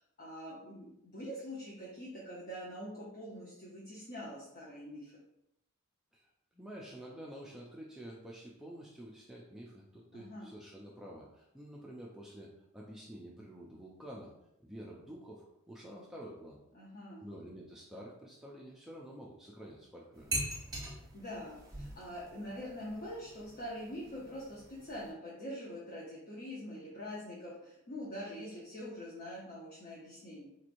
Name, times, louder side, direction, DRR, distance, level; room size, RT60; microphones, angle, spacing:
voice 1, 0.0-5.1 10.1-10.5 16.7-17.2 21.1-30.4, equal, 45° left, -5 dB, 0.7 m, -44 dB
voice 2, 6.1-14.3 14.6-16.6 17.2-20.3, equal, ahead, -4 dB, 0.4 m, -49 dB
sound 1, 20.1-25.1, right 2 dB, 20° right, 1.0 m, -43 dB
4.0 x 3.0 x 2.5 m, 0.83 s
head